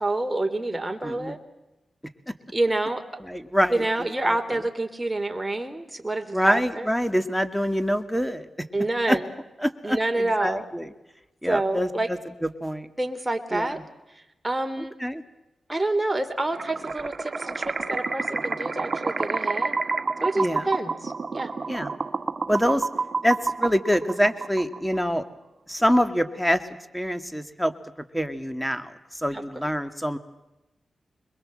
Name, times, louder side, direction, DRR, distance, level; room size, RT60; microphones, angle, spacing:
voice 1, 0.0-1.4 2.5-3.0 3.7-6.9 8.7-9.2 9.8-10.7 11.4-12.1 13.0-13.8 14.4-14.9 15.7-19.7 20.2-21.5 29.3-29.4, right 2 dB, 20° right, 7 dB, 3.2 m, -27 dB
voice 2, 1.0-1.4 2.3-2.4 3.2-3.8 4.2-4.4 6.3-8.5 9.1-9.2 9.6-10.9 11.4-12.9 13.5-13.8 14.8-15.2 20.4-20.7 21.7-21.9 22.5-22.9 23.2-25.2 25.7-26.6 26.9-27.7 28.1-30.2, equal, 5° left, 10 dB, 2.2 m, -25 dB
sound 1, 16.5-25.0, right 4 dB, 50° right, 1.5 m, -29 dB
26.0 x 22.0 x 7.7 m, 0.99 s
cardioid pair, 50°, 0 cm